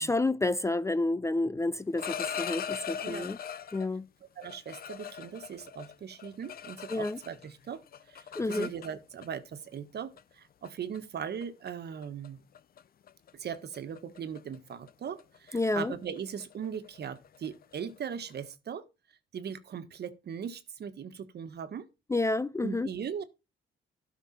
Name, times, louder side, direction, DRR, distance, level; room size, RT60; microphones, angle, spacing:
voice 1, 0.0-3.4 3.7-4.1 6.9-7.2 8.4-8.7 15.5-15.9 22.1-22.9, left 2 dB, 15° left, 0.4 m, -29 dB
sound 1, 1.8-3.9 4.4-7.5 7.7-9.3 10.2-10.3 10.6-11.0 11.4-11.7 12.0-12.3 12.5-12.8 13.1-18.5, left 8 dB, 50° left, 0.7 m, -40 dB
voice 2, 4.3-7.8 8.1-12.4 13.3-18.8 19.3-21.9 22.6-23.2, right 7 dB, 55° right, 1.4 m, -39 dB
12.5 x 5.8 x 4.3 m
cardioid pair, 90°, 20 cm